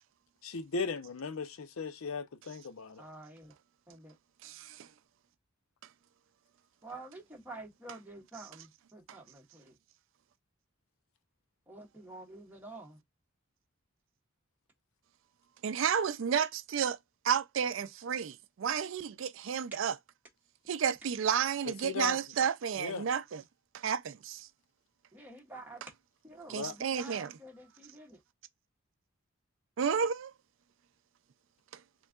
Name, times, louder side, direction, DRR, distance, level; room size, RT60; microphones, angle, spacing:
voice 1, 0.4-3.0 21.8-22.2 22.8-23.1 26.5-26.7, left 4 dB, 85° left, 0.6 m, -37 dB
voice 2, 2.9-3.5 3.9-4.2 6.8-9.8 11.7-12.9 25.1-25.8 26.2-28.2, right 2 dB, 10° right, 1.5 m, -49 dB
voice 3, 4.4-4.9 15.6-17.0 17.2-19.9 20.7-23.4 23.7-24.5 26.5-27.3 29.8-30.3, right 7 dB, 65° right, 0.4 m, -31 dB
4.4 x 3.7 x 2.3 m
head